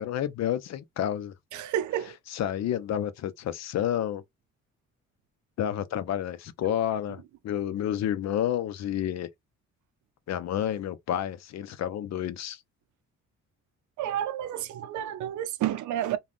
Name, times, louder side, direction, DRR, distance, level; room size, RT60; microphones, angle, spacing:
voice 1, 0.0-1.3 2.3-4.2 5.6-9.3 10.3-12.6, left 10 dB, 60° left, 0.6 m, -30 dB
voice 2, 1.5-2.1 6.6-6.8 14.0-16.2, right 11 dB, 75° right, 0.5 m, -30 dB
2.4 x 2.3 x 3.5 m
cardioid pair, 90°, 30 cm